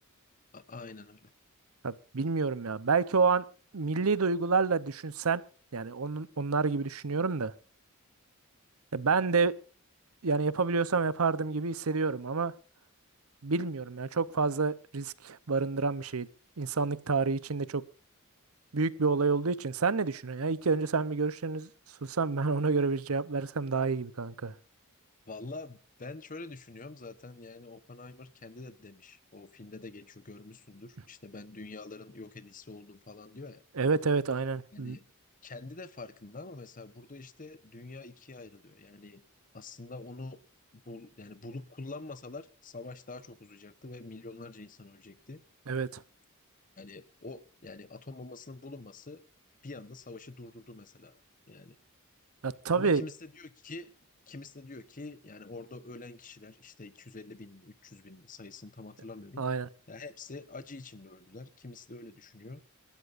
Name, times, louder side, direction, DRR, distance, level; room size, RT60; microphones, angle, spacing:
voice 1, 0.5-1.3 25.3-33.6 34.7-35.1 35.4-39.2 39.5-40.4 40.7-45.4 46.8-49.2 49.6-51.2 51.5-51.8 52.7-54.0 54.3-59.4 59.9-62.6, left 3 dB, 40° left, 1.0 m, -46 dB
voice 2, 1.8-3.4 3.7-5.4 5.7-7.5 8.9-9.5 10.2-12.5 13.4-16.3 16.6-17.8 18.7-21.7 22.0-24.5 33.8-35.0 45.7-46.0 52.4-53.0 59.4-59.7, right 4 dB, 70° right, 0.8 m, -28 dB
26.0 x 13.0 x 2.6 m
head